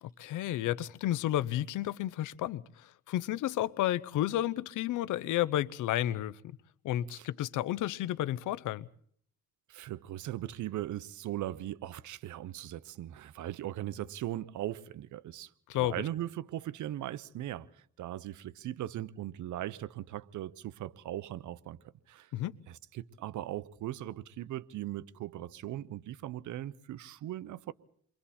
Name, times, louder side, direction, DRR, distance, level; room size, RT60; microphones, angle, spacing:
voice 1, 0.0-6.4 6.8-8.9 15.7-16.0 22.3-22.6, left 13 dB, 80° left, 0.8 m, -32 dB
voice 2, 9.7-15.5 15.8-21.8 22.1-22.3 22.7-27.7, right 13 dB, 75° right, 0.9 m, -39 dB
29.0 x 23.0 x 4.3 m
cardioid pair, 90°, 30 cm